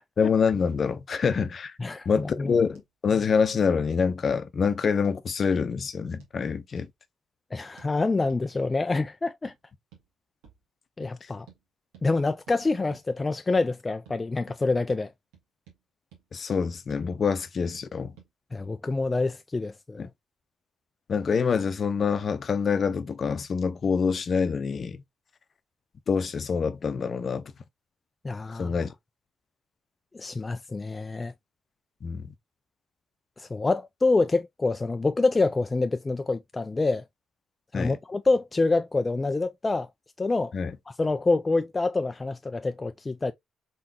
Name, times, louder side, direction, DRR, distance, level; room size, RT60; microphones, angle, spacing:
voice 1, 0.2-1.7 2.1-6.9 16.3-18.1 20.0-20.1 21.1-25.0 26.1-27.4 28.5-28.9 32.0-32.2 37.7-38.0 40.5-40.7, left 5 dB, 50° left, 0.7 m, -26 dB
voice 2, 1.8-2.5 7.5-9.5 11.0-11.5 12.0-15.1 18.5-20.1 28.2-28.7 30.1-31.3 33.4-37.0 37.7-39.9 40.2-40.5 40.9-43.3, left 3 dB, 30° left, 0.4 m, -26 dB
sound 1, 2.7-2.9 3.2-3.3 3.7-3.8 4.3-4.5 5.0-5.2 5.9-6.4 6.8-6.9 7.8-7.9 8.3-8.4 8.9-9.1 9.4-9.6 9.9-10.1 10.4-10.6 11.0-11.1 11.5-11.6 11.9-12.1 12.5-12.6 12.9-13.1 13.5-13.7 14.1-14.2 14.5-14.6 14.9-15.0 15.3-15.8 16.1-16.2 16.6-17.1 17.7-17.9 18.2-18.3, right 8 dB, 85° right, 2.0 m, -54 dB
4.2 x 4.0 x 2.7 m
supercardioid pair, 55°, 0 cm